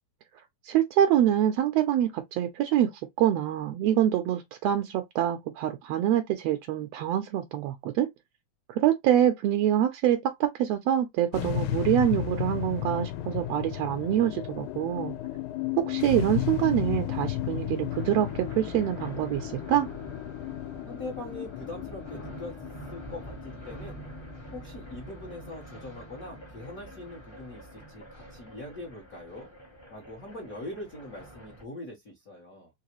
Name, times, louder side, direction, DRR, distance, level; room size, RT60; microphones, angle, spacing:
voice 1, 0.6-2.9 3.2-8.1 8.7-15.1 15.8-19.9, right 11 dB, 80° right, 1.5 m, -25 dB
sound 1, 11.3-27.7, left 12 dB, 85° left, 2.1 m, -34 dB
sound 2, 17.9-31.6, right 2 dB, 30° left, 0.4 m, -46 dB
voice 2, 20.9-22.5 22.9-24.0 24.5-29.5 29.9-32.7, left 2 dB, 60° left, 0.9 m, -42 dB
4.8 x 2.9 x 2.9 m
omnidirectional pair, 3.5 m